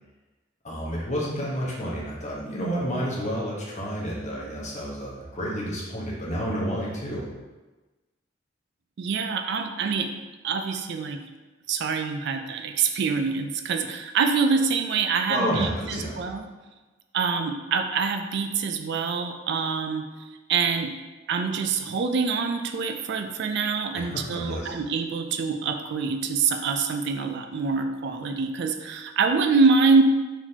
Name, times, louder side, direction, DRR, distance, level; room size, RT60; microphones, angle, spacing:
voice 1, 0.6-7.2 15.3-16.2 23.9-24.7, equal, 40° left, -4 dB, 1.1 m, -30 dB
voice 2, 9.0-10.1 10.4-11.2 11.7-16.4 17.1-20.1 20.5-21.0 21.3-30.0, right 5 dB, 65° right, 7 dB, 0.4 m, -25 dB
4.7 x 3.8 x 2.8 m, 1.2 s
head